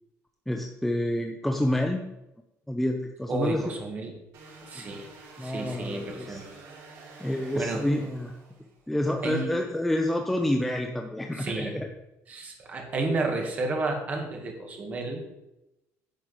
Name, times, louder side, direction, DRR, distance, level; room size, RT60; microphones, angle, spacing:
voice 1, 0.5-2.0 2.7-3.7 4.7-5.0 5.4-6.4 7.2-8.3 8.9-11.9, left 1 dB, 5° left, 3 dB, 0.6 m, -28 dB
voice 2, 3.3-4.2 4.6-5.1 5.4-6.5 7.6-7.8 9.2-9.6 11.4-11.8 12.3-15.2, right 2 dB, 25° right, 2 dB, 2.0 m, -31 dB
sound 1, 4.3-8.9, right 3 dB, 70° right, 5.0 m, -49 dB
10.5 x 5.1 x 8.1 m, 0.92 s
cardioid pair, 175°, 6 cm